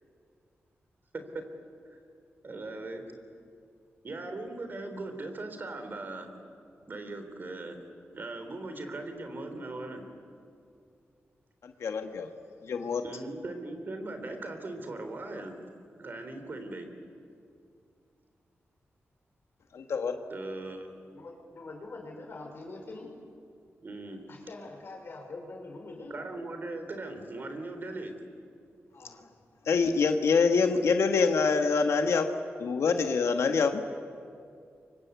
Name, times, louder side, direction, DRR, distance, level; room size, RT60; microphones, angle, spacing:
voice 1, 2.4-3.0 4.0-6.3 6.9-7.8 8.1-10.0 13.0-15.6 16.0-16.9 20.3-20.9 23.8-24.2 26.1-28.1, right 2 dB, 45° right, 7 dB, 3.6 m, -39 dB
voice 2, 11.6-12.3 12.6-13.0 19.7-20.1 29.7-32.3 32.6-33.8, left 5 dB, 85° left, 5 dB, 1.5 m, -25 dB
voice 3, 21.1-23.1 24.3-26.1 28.9-29.3, left 2 dB, 55° left, 2 dB, 5.2 m, -44 dB
29.0 x 25.0 x 8.3 m, 2.4 s
wide cardioid pair, 115°, 5 cm